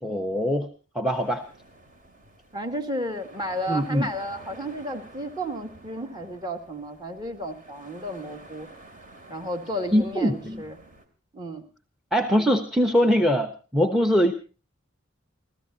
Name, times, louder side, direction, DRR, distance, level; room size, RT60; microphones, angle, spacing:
voice 1, 0.0-0.7 0.9-1.5 3.7-4.1 9.9-10.6 12.1-14.3, equal, ahead, 6 dB, 1.0 m, -22 dB
sound 1, 1.1-11.1, right 2 dB, 45° right, 2.9 m, -50 dB
voice 2, 2.5-8.7 9.3-10.7 11.3-11.6, equal, 20° right, 5 dB, 2.0 m, -32 dB
29.5 x 14.0 x 2.8 m, 0.34 s
head